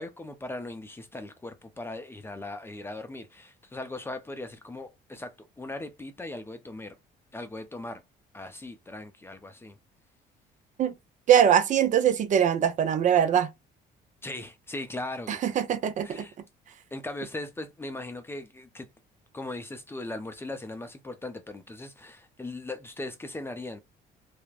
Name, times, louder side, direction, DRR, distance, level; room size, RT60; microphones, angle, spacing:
voice 1, 0.0-7.0 7.3-8.0 8.3-9.8 14.2-15.4 15.7-16.4 16.9-18.9 19.3-23.8, left 2 dB, 15° left, 0.5 m, -39 dB
voice 2, 11.3-13.5 15.3-16.2, right 9 dB, 45° right, 0.5 m, -22 dB
3.2 x 2.1 x 2.3 m
cardioid pair, 110°, 17 cm